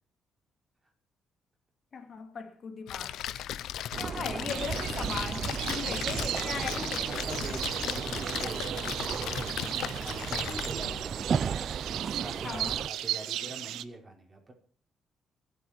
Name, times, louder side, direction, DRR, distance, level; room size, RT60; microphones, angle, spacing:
voice 1, 1.9-3.2 3.9-7.1 12.4-12.8, left 5 dB, 50° left, 2.4 m, -38 dB
Splash splatter, 2.9-11.0, left 11 dB, 80° left, 0.8 m, -37 dB
sound 1, 3.9-12.9, right 6 dB, 50° right, 0.6 m, -35 dB
sound 2, 4.5-13.8, right 12 dB, 85° right, 0.7 m, -36 dB
voice 2, 7.0-11.5 12.1-14.5, right 2 dB, 25° right, 5.4 m, -44 dB
25.0 x 8.6 x 4.6 m
cardioid pair, 90°, 0 cm